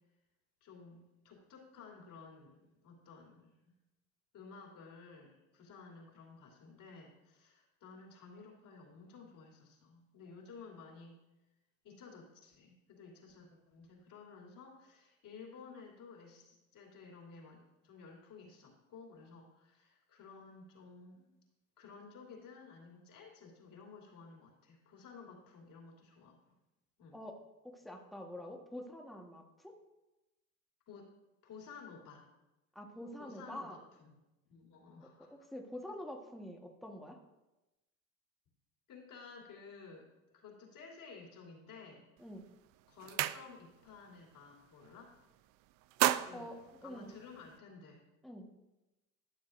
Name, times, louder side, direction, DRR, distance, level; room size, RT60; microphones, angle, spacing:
voice 1, 0.6-3.7 4.3-11.1 11.8-21.3 21.8-26.4 27.0-27.2 30.9-31.1 31.4-32.3 33.2-34.2 34.5-35.3 38.9-42.1 42.9-45.1 46.2-46.5 46.8-48.0, left 5 dB, 55° left, -2 dB, 2.9 m, -54 dB
voice 2, 27.6-29.8 32.7-33.8 35.2-37.2 42.2-42.4 46.3-47.2 48.2-48.5, left 1 dB, ahead, 2 dB, 1.3 m, -46 dB
sound 1, 42.2-42.4 42.7-43.9 44.2-44.5 44.8-45.4 45.7-47.6, right 14 dB, 55° right, 0.5 m, -35 dB
13.5 x 7.1 x 2.5 m, 0.99 s
hypercardioid pair, 80°, 40 cm